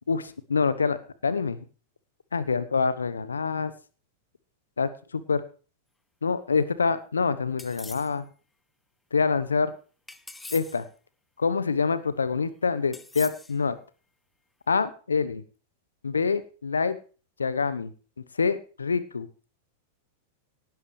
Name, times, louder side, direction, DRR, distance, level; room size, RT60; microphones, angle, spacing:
voice 1, 0.1-1.6 2.3-3.7 4.8-5.4 6.2-8.2 9.1-9.7 10.5-10.8 11.4-13.7 14.7-15.4 16.0-17.0 17.4-17.9 18.4-19.3, left 5 dB, 80° left, 15 dB, 1.0 m, -26 dB
sound 1, 7.6-8.2 10.1-10.9 12.9-13.6, left 2 dB, 10° left, 0.9 m, -43 dB
18.0 x 11.0 x 3.3 m, 0.38 s
figure-of-eight pair, 95°, 0 cm